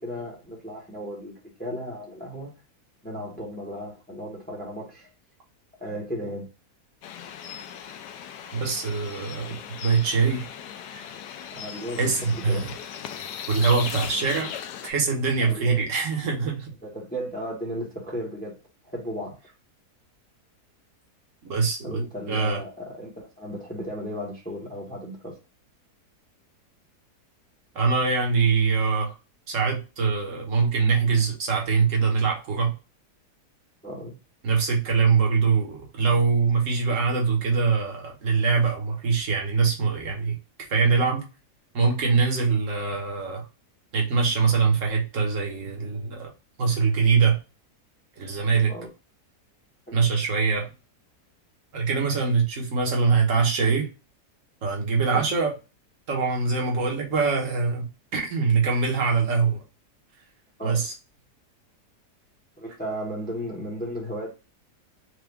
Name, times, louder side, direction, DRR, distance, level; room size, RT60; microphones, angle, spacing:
voice 1, 0.0-2.5 3.0-5.1 5.8-6.5 8.4-8.6 9.5-9.6 11.5-12.7 15.4-15.8 16.8-18.6 18.8-19.4 21.8-25.4 33.8-34.2 48.7-48.9 49.9-50.0 55.1-55.3 60.6-60.9 62.6-64.3, equal, 5° left, 1.0 m, -35 dB
sound 1, 7.0-14.9, left 8 dB, 85° left, 1.2 m, -37 dB
voice 2, 8.5-9.5 9.8-10.4 10.9-11.1 12.0-12.7 13.5-14.5 14.8-16.7 21.4-22.6 27.7-29.1 29.5-32.7 34.4-40.4 40.7-41.2 41.7-43.5 43.9-46.3 46.6-47.4 48.2-48.7 49.9-50.7 51.7-53.9 54.6-55.5 56.1-59.6 60.6-60.9, right 5 dB, 55° right, 1.5 m, -23 dB
4.7 x 2.5 x 3.3 m
omnidirectional pair, 1.7 m